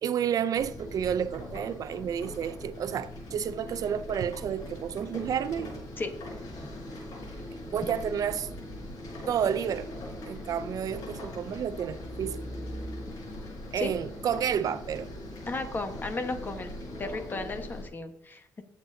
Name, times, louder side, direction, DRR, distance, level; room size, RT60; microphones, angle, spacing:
voice 1, 0.0-5.8 7.7-8.5 9.3-9.9 10.3-12.4 13.7-15.1, right 8 dB, 60° right, 0.4 m, -30 dB
sound 1, 0.6-17.8, left 1 dB, 85° left, 4.3 m, -40 dB
voice 2, 15.5-16.7 17.0-18.6, left 3 dB, 30° left, 1.2 m, -34 dB
17.5 x 7.2 x 2.7 m
cardioid pair, 125°, 7 cm